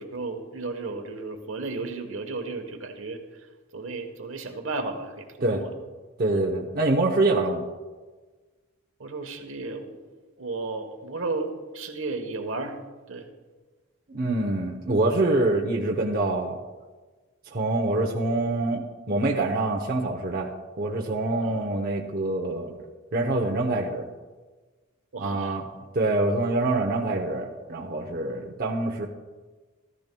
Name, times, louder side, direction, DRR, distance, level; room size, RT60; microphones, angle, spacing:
voice 1, 0.0-5.7 6.3-6.4 9.0-12.8 13.1-13.3 21.4-21.7 25.1-25.6, right 3 dB, 65° right, 6 dB, 1.1 m, -34 dB
voice 2, 6.2-7.6 14.1-16.6 17.5-18.8 19.1-20.5 20.8-22.8 23.1-24.1 25.2-25.7 25.9-29.1, right 2 dB, 45° right, -1 dB, 0.8 m, -25 dB
14.0 x 13.5 x 2.2 m, 1.3 s
head